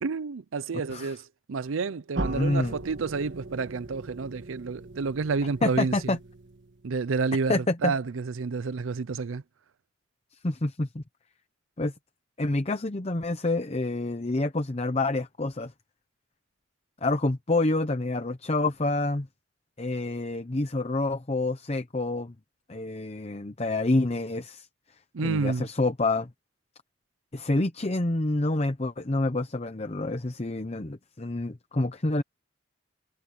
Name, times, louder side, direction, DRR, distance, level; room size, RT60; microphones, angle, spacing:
voice 1, 0.0-6.2 6.8-9.4 25.1-25.7, right 4 dB, 80° right, 0.5 m, -30 dB
sound 1, 2.1-7.0, right 2 dB, 65° right, 1.6 m, -39 dB
voice 2, 2.2-2.8 5.6-6.2 7.5-7.9 10.4-11.0 11.8-11.9 12.4-15.7 17.0-19.3 19.8-22.3 22.7-24.7 25.2-26.3 27.3-32.2, left 2 dB, 30° left, 0.8 m, -27 dB
head